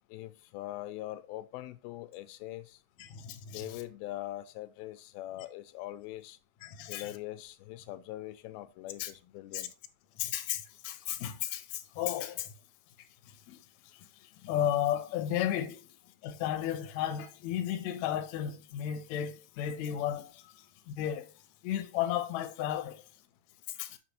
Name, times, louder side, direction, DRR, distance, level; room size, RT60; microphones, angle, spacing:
voice 1, 0.1-2.8 3.5-6.4 6.9-9.7, left 15 dB, 85° left, 2.4 m, -42 dB
voice 2, 3.0-3.8 6.6-7.1 9.0-9.1 9.5-9.7 10.2-12.5 13.5-13.6 14.4-15.8 16.2-20.4 20.9-21.3 21.6-23.0 23.8-24.0, left 11 dB, 70° left, 1.7 m, -33 dB
6.7 x 6.5 x 2.9 m
omnidirectional pair, 4.3 m